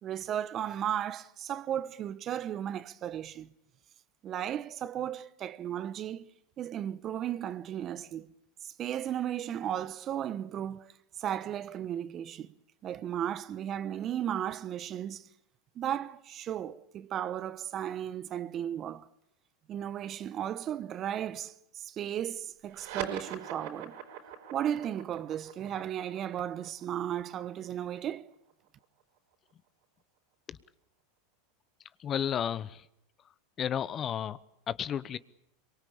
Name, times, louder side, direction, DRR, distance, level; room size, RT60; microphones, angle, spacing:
voice 1, 0.0-3.5 4.2-8.3 8.6-10.9 11.2-12.5 12.8-15.2 15.8-19.1 19.7-24.0 24.5-28.3, right 10 dB, 40° right, 1.1 m, -35 dB
sound 1, 22.7-29.5, right 8 dB, 65° right, 4.7 m, -44 dB
voice 2, 32.0-32.8 33.6-34.4 34.7-35.2, left 9 dB, 35° left, 0.9 m, -32 dB
23.5 x 23.0 x 8.7 m
hypercardioid pair, 105°, 0 cm